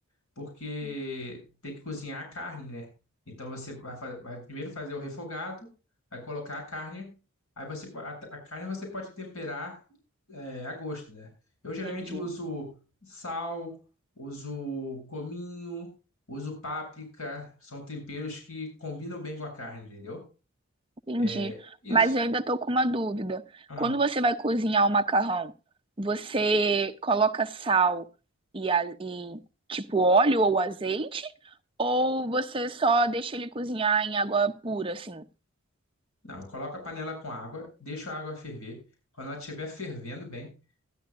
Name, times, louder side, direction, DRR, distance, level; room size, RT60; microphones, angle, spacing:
voice 1, 0.4-2.9 3.3-5.7 6.1-7.2 7.6-9.8 10.3-11.3 11.6-13.8 14.2-15.9 16.3-20.3 21.1-22.1 23.7-24.0 36.2-38.8 39.1-40.5, left 1 dB, 70° left, 7.8 m, -38 dB
voice 2, 11.8-12.2 21.1-21.5 21.9-23.4 23.8-25.5 26.0-28.0 28.5-29.4 29.7-31.3 31.8-35.2, right 3 dB, 25° right, 0.7 m, -26 dB
21.0 x 13.0 x 2.5 m
head